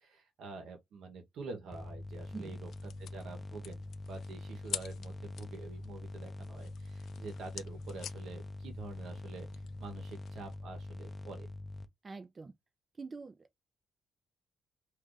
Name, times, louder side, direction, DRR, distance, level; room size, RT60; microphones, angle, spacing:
voice 1, 0.0-2.7 3.0-9.5 9.8-11.5, right 4 dB, 75° right, 1.0 m, -47 dB
sound 1, 1.7-11.9, left 2 dB, 20° left, 0.6 m, -44 dB
sound 2, 2.1-10.6, left 9 dB, 70° left, 0.3 m, -48 dB
voice 2, 12.0-12.5 13.0-13.6, right 4 dB, 30° right, 0.4 m, -45 dB
2.5 x 2.5 x 3.8 m
cardioid pair, 90°, 0 cm